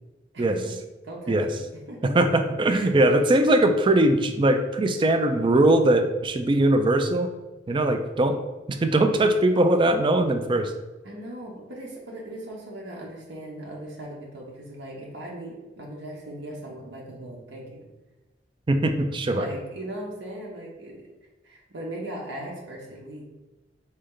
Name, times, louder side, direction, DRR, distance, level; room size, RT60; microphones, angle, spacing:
voice 1, 0.3-0.7 1.0-1.6 1.9-2.1 2.7-3.4 11.0-17.9 19.3-21.1 21.4-23.2, right 1 dB, 75° right, -3 dB, 0.9 m, -38 dB
voice 2, 2.0-7.3 7.7-8.4 8.7-10.7 18.7-19.5, right 1 dB, 25° right, 7 dB, 0.4 m, -21 dB
4.3 x 3.2 x 3.8 m, 1.1 s
head